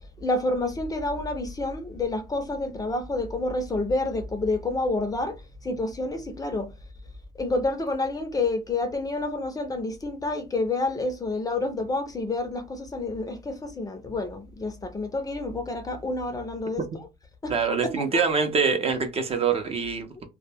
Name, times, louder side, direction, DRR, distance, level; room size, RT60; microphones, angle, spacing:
voice 1, 0.2-5.4 5.6-6.7 7.4-16.8 17.4-17.5 18.1-18.2, left 2 dB, 20° left, 0.5 m, -28 dB
voice 2, 17.5-20.2, right 5 dB, 35° right, 0.6 m, -25 dB
2.1 x 2.1 x 3.3 m
cardioid pair, 110°, 17 cm